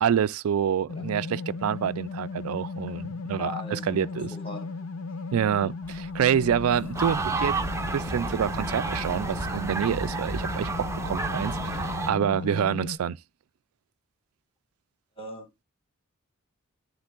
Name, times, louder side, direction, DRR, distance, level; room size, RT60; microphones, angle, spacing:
voice 1, 0.0-4.3 5.3-7.6 7.9-13.2, right 8 dB, 90° right, 0.4 m, -27 dB
sound 1, 0.9-13.0, left 4 dB, 75° left, 0.6 m, -36 dB
voice 2, 3.4-4.7 11.3-11.8 15.2-15.6, left 2 dB, 25° left, 1.6 m, -41 dB
sound 2, 5.8-11.7, right 1 dB, 10° left, 1.5 m, -46 dB
sound 3, 6.9-12.1, right 3 dB, 15° right, 0.5 m, -31 dB
9.8 x 3.4 x 3.7 m
head